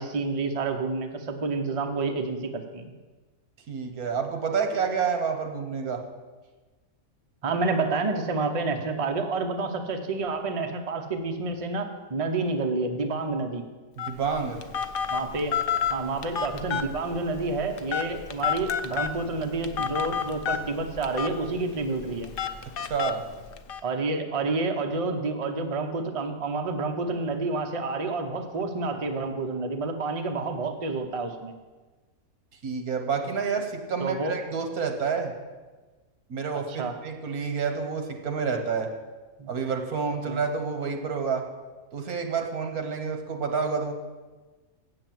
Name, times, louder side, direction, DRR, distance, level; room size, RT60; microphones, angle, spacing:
voice 1, 0.0-2.9 7.4-13.6 15.1-15.5 15.9-22.3 23.8-31.5 34.0-34.4 36.7-36.9 39.4-39.5 40.3-40.4, right 3 dB, 30° right, 5 dB, 0.7 m, -29 dB
voice 2, 3.7-6.0 14.0-14.6 22.8-23.2 32.6-35.3 36.3-38.9 39.5-41.4 41.9-43.9, right 5 dB, 80° right, 5 dB, 1.7 m, -29 dB
Telephone, 14.0-23.8, left 7 dB, 60° left, 0.6 m, -31 dB
8.1 x 7.6 x 7.5 m, 1.3 s
omnidirectional pair, 1.5 m